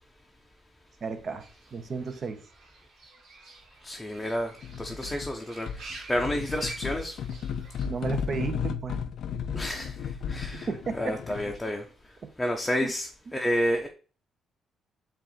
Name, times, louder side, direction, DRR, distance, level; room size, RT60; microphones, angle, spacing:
voice 1, 1.0-1.4 1.7-2.5 7.9-9.0 10.5-11.2 12.2-12.3 12.8-12.9, right 5 dB, 50° right, 0.8 m, -33 dB
Fowl / Bird, 1.4-7.9, right 3 dB, 75° right, 1.8 m, -48 dB
voice 2, 3.8-7.3 9.5-10.7 11.0-13.9, equal, 10° left, 0.6 m, -31 dB
sound 1, 4.6-5.3 5.7-11.7, left 7 dB, 70° left, 0.4 m, -34 dB
4.6 x 2.5 x 4.1 m
cardioid pair, 90°, 0 cm